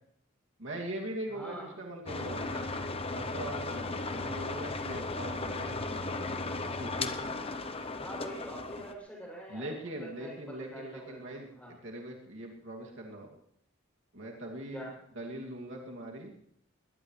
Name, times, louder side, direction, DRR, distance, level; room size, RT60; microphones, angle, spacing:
voice 1, 0.6-2.6 3.1-6.5 6.8-7.1 9.5-13.4 14.1-14.9 15.1-16.3, right 1 dB, 65° right, -1 dB, 2.5 m, -41 dB
voice 2, 1.3-1.7 8.0-10.3 10.6-11.1 11.4-11.7 14.7-14.9, equal, 5° left, -3 dB, 7.2 m, -44 dB
sound 1, 2.1-8.9, left 3 dB, 30° left, 0.9 m, -36 dB
21.5 x 18.5 x 3.3 m, 0.74 s
head